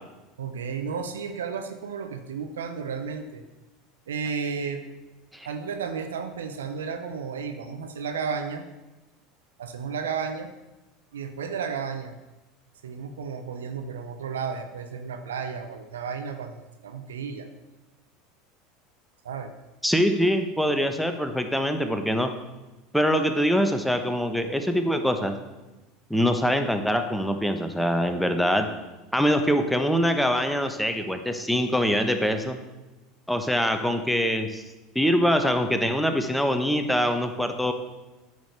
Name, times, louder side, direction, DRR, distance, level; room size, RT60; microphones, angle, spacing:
voice 1, 0.4-3.4 4.1-4.8 5.4-8.6 9.6-10.5 11.1-12.1 12.8-16.6 16.8-17.5 19.2-19.5, right 6 dB, 85° right, 8 dB, 0.8 m, -33 dB
voice 2, 19.8-22.3 22.9-25.3 26.1-28.7 29.1-32.6 33.3-34.6 34.9-37.7, equal, ahead, 6 dB, 1.2 m, -24 dB
9.3 x 6.4 x 6.6 m, 1.1 s
hypercardioid pair, 80°, 0 cm